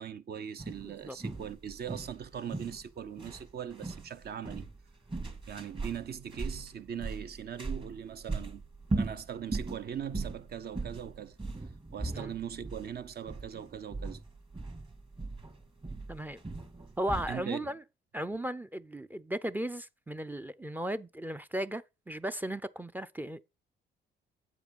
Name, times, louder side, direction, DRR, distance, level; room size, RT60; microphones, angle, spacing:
voice 1, 0.0-4.7 5.5-8.6 9.0-11.4 11.9-14.2 17.3-17.7, right 8 dB, 55° right, 0.7 m, -40 dB
sound 1, 0.6-17.4, right 3 dB, 25° right, 1.9 m, -39 dB
voice 2, 0.8-1.2 12.1-12.3 16.1-16.4 17.0-17.8 18.1-23.4, right 1 dB, 10° right, 0.4 m, -36 dB
8.1 x 4.8 x 5.3 m
cardioid pair, 90°, 20 cm